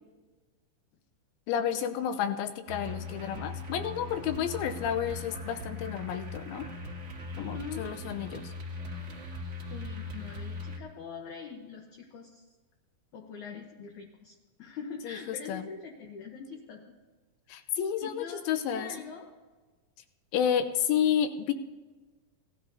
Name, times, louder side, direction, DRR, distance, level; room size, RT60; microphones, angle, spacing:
voice 1, 1.5-6.6 7.4-8.5 15.0-15.2 15.5-15.6 17.5-18.9 20.3-21.5, left 8 dB, 80° left, 9 dB, 2.6 m, -30 dB
sound 1, 2.7-10.8, left 2 dB, 55° right, 1.4 m, -40 dB
voice 2, 7.4-7.9 9.7-12.5 13.1-16.8 18.0-19.3, left 5 dB, 65° left, 0 dB, 2.1 m, -43 dB
18.5 x 13.0 x 2.7 m, 1.3 s
omnidirectional pair, 4.4 m